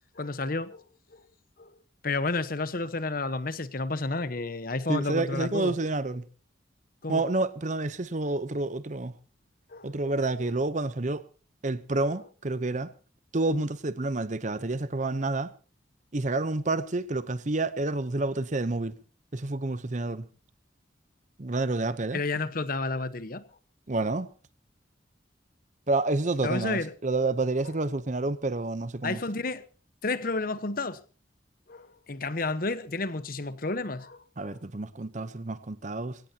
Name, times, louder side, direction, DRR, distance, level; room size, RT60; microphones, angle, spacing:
voice 1, 0.1-0.8 1.1-1.2 1.6-1.7 2.0-5.7 7.0-7.2 9.7-10.1 10.4-10.5 22.1-23.4 26.4-26.9 29.0-29.6 30.0-31.0 31.7-34.6, left 3 dB, 50° left, 1.1 m, -31 dB
voice 2, 4.9-6.2 7.1-9.1 9.8-11.3 11.6-12.9 13.3-15.5 16.1-19.0 19.3-20.3 21.4-22.2 23.9-24.3 25.9-29.2 34.4-36.2, right 2 dB, 40° right, 0.8 m, -29 dB
23.5 x 17.5 x 2.9 m
head